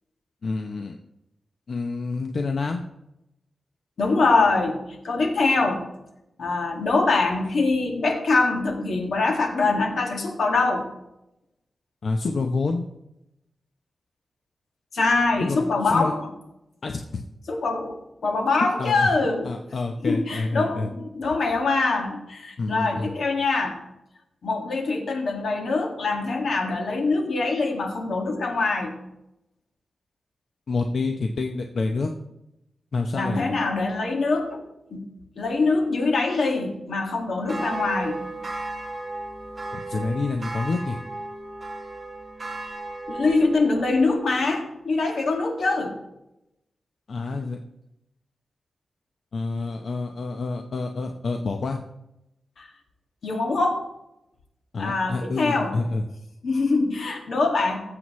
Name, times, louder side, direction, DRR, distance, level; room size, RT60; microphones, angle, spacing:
voice 1, 0.4-1.0 1.7-2.8 12.0-12.9 15.4-16.1 16.8-17.2 18.8-19.1 19.4-20.9 22.6-23.1 30.7-32.1 32.9-33.5 39.7-41.0 47.1-47.6 49.3-51.8 54.7-56.0, left 3 dB, 55° left, 4 dB, 0.8 m, -28 dB
voice 2, 4.0-5.8 6.4-10.9 14.9-16.3 17.5-19.5 20.0-23.8 24.4-28.9 33.1-34.6 34.9-35.1 35.4-38.2 43.1-46.0 52.6-52.7 53.2-53.8 54.8-55.8 56.4-57.8, left 3 dB, 80° left, 2 dB, 2.0 m, -23 dB
sound 1, 37.4-44.1, right 2 dB, 30° right, 2.0 m, -35 dB
20.0 x 7.7 x 3.2 m, 0.87 s
wide cardioid pair, 160°, 0 cm